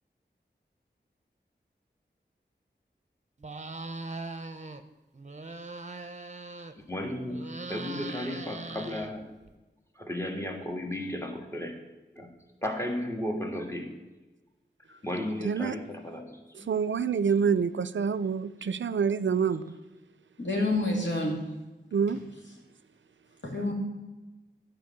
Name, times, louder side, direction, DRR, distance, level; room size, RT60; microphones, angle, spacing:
sound 1, 3.4-4.8 5.1-6.9 7.3-9.5, right 3 dB, 40° right, 0.7 m, -40 dB
voice 1, 6.9-9.4 10.0-11.8 12.2-12.3 12.6-14.0 14.9-16.7, left 1 dB, 15° left, 1.6 m, -34 dB
voice 2, 15.4-15.8 16.6-19.7 21.9-22.2, right 6 dB, 80° right, 0.4 m, -27 dB
voice 3, 20.4-21.4 23.4-23.7, left 2 dB, 75° left, 2.4 m, -28 dB
10.5 x 5.0 x 7.2 m
wide cardioid pair, 45°, 19 cm